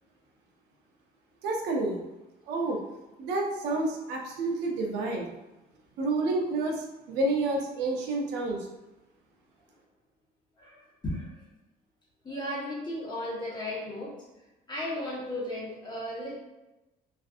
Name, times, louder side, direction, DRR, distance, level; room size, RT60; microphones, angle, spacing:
voice 1, 1.4-2.0 2.5-2.8 3.2-5.3 6.0-8.7, right 2 dB, 85° right, 1 dB, 0.6 m, -29 dB
voice 2, 10.6-11.4 12.2-14.1 14.7-16.4, left 1 dB, 25° left, -6 dB, 1.0 m, -35 dB
2.5 x 2.4 x 2.4 m, 1.0 s
cardioid pair, 110°, 17 cm